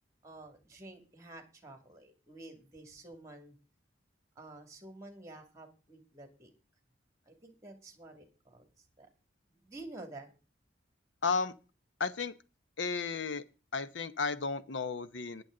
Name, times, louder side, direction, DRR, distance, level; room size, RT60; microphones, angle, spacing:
voice 1, 0.2-3.6 4.4-6.5 7.3-9.1 9.5-10.3, right 2 dB, 15° right, 2.4 m, -50 dB
voice 2, 11.2-11.5 12.0-12.3 12.8-13.4 13.7-15.4, left 4 dB, 75° left, 0.9 m, -33 dB
20.5 x 7.1 x 3.8 m
head